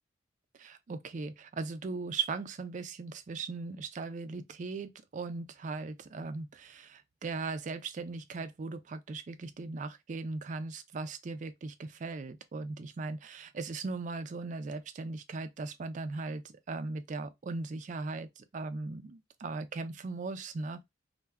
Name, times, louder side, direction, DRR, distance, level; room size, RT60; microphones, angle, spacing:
voice 1, 0.5-20.8, right 3 dB, 40° right, 0.3 m, -38 dB
2.2 x 2.2 x 3.3 m
head